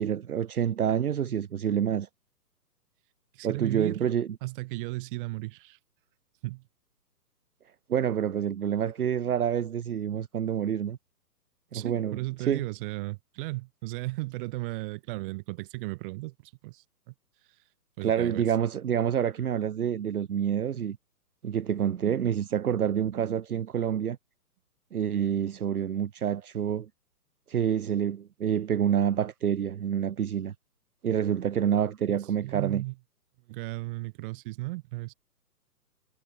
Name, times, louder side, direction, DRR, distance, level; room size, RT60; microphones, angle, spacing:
voice 1, 0.0-2.1 3.4-4.3 7.9-11.0 11.7-12.7 18.0-21.0 21.4-24.2 24.9-26.9 27.5-30.5 31.0-32.8, right 9 dB, 60° right, 1.3 m, -27 dB
voice 2, 3.3-4.1 4.4-5.8 6.4-6.6 11.7-17.1 18.0-18.5 32.4-32.9 33.5-35.1, right 22 dB, 30° right, 3.2 m, -35 dB
figure-of-eight pair, 130°, 49 cm